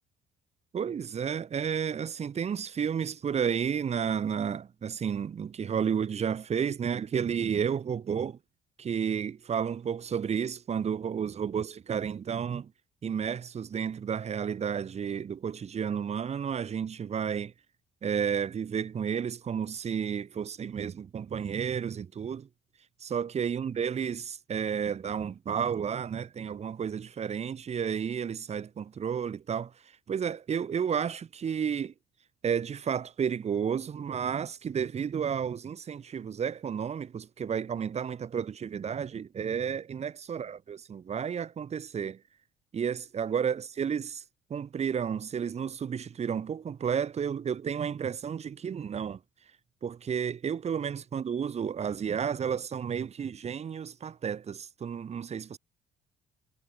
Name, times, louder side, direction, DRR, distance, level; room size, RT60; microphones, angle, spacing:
voice 1, 0.7-8.4 8.8-12.7 13.0-17.5 18.0-22.5 23.0-29.7 30.1-31.9 32.4-42.2 42.7-44.2 44.5-49.2 49.8-55.6, right 7 dB, 40° right, 2.6 m, -32 dB
cardioid pair, 110°, 17 cm